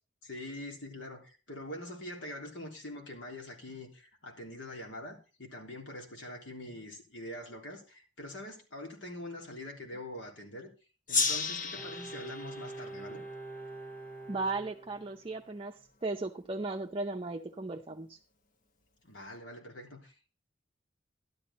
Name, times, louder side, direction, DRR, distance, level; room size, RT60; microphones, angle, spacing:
voice 1, 0.2-10.7 11.1-13.3 19.0-20.3, left 1 dB, 80° left, 3.4 m, -44 dB
Gong, 11.1-14.2, left 4 dB, 45° left, 1.0 m, -34 dB
Bowed string instrument, 11.7-15.5 15.8-15.9, right 3 dB, 10° left, 1.7 m, -45 dB
voice 2, 14.3-18.2, right 3 dB, 30° right, 0.6 m, -36 dB
12.0 x 11.0 x 4.1 m
head